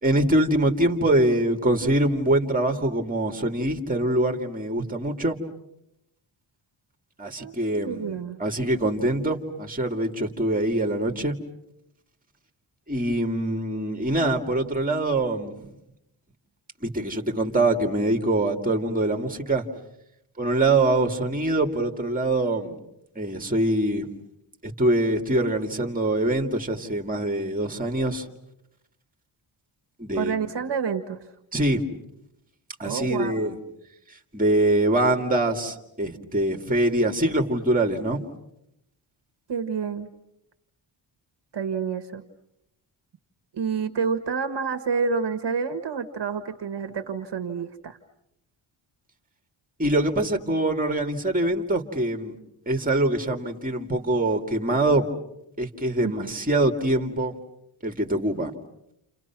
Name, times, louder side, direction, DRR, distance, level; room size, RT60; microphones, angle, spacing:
voice 1, 0.0-5.4 7.2-8.1 8.4-11.4 12.9-15.7 16.8-19.6 20.4-22.8 23.2-24.1 24.6-28.3 30.0-30.4 31.5-31.8 32.8-33.6 34.3-38.2 49.8-52.3 52.7-55.1 55.6-57.3 57.8-58.5, right 1 dB, 15° right, 4 dB, 2.5 m, -24 dB
voice 2, 7.9-8.4 30.1-31.2 32.8-33.4 39.5-40.1 41.5-42.2 43.5-48.0 56.0-56.3, right 5 dB, 55° right, 9 dB, 1.6 m, -28 dB
30.0 x 29.5 x 6.1 m, 0.82 s
wide cardioid pair, 120°, 49 cm